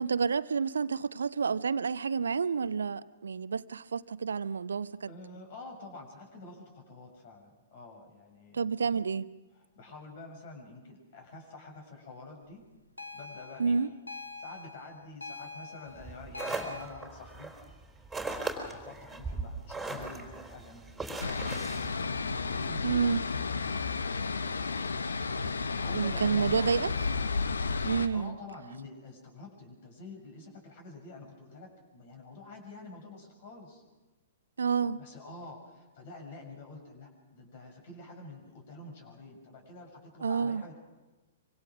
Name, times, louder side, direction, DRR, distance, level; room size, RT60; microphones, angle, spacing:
voice 1, 0.0-5.1 8.5-9.3 13.6-13.9 22.8-23.2 25.9-26.9 27.8-28.4 34.6-35.0 40.2-40.6, right 6 dB, 70° right, 0.8 m, -29 dB
voice 2, 5.1-9.0 9.7-12.6 13.1-13.9 14.4-17.5 18.2-22.1 22.5-23.3 25.8-26.9 28.0-33.8 35.0-40.8, left 3 dB, 45° left, 6.8 m, -48 dB
sound 1, 13.0-16.8, left 3 dB, 85° left, 2.5 m, -44 dB
sound 2, 15.9-22.7, right 3 dB, 5° right, 4.0 m, -39 dB
sound 3, 21.2-28.1, left 4 dB, 70° left, 1.2 m, -32 dB
25.5 x 25.5 x 6.3 m
figure-of-eight pair, 110°, 0 cm